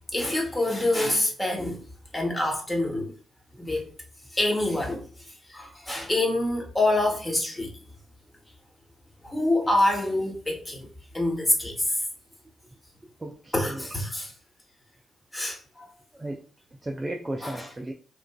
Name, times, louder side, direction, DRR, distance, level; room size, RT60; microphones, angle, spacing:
voice 1, 0.1-1.8 2.1-3.1 3.6-3.9 4.3-5.0 5.5-7.7 9.2-10.8 11.1-11.7 13.5-14.3 15.3-15.9 17.4-17.7, left 1 dB, 20° left, 1.1 m, -26 dB
voice 2, 13.2-13.8 16.1-16.4 16.8-17.9, right 1 dB, 25° right, 0.4 m, -34 dB
3.0 x 2.4 x 2.2 m
hypercardioid pair, 40°, 0 cm